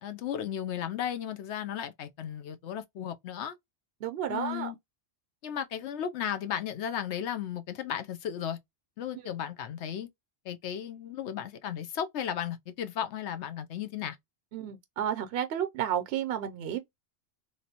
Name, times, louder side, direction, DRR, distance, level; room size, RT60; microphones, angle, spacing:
voice 1, 0.0-3.5 4.3-4.8 5.4-8.6 9.0-10.1 10.4-14.2, left 9 dB, 80° left, 0.9 m, -35 dB
voice 2, 4.0-4.7 14.5-16.8, right 9 dB, 65° right, 0.8 m, -32 dB
3.3 x 2.5 x 2.8 m
omnidirectional pair, 1.2 m